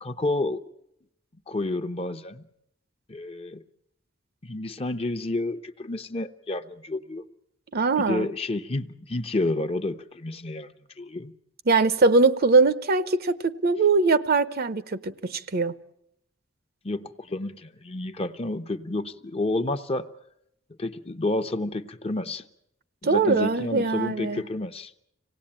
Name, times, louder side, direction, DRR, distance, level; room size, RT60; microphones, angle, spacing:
voice 1, 0.0-0.6 1.5-2.4 3.1-3.6 4.4-7.2 8.0-10.7 11.0-11.3 16.8-20.1 20.8-22.4 23.0-24.9, left 2 dB, 30° left, 0.8 m, -30 dB
voice 2, 7.7-8.3 11.7-15.7 23.0-24.4, right 3 dB, 50° right, 0.8 m, -22 dB
25.5 x 17.5 x 8.8 m
head